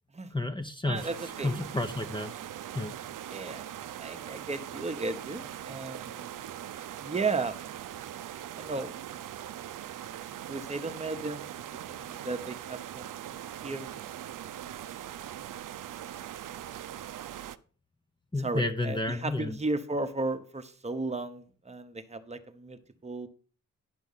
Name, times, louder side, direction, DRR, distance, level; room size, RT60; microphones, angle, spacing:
voice 1, 0.3-1.1 1.4-2.3 2.7-2.9 18.3-19.6, left 2 dB, 15° left, 6 dB, 0.7 m, -31 dB
voice 2, 0.8-1.5 3.3-6.5 7.0-7.6 8.6-9.0 10.5-11.5 11.9-13.2 13.6-13.9 18.4-23.3, right 3 dB, 20° right, 9 dB, 0.9 m, -35 dB
sound 1, 1.0-17.6, right 11 dB, 90° right, 0.6 m, -41 dB
10.5 x 6.2 x 5.5 m, 0.41 s
wide cardioid pair, 145°, 31 cm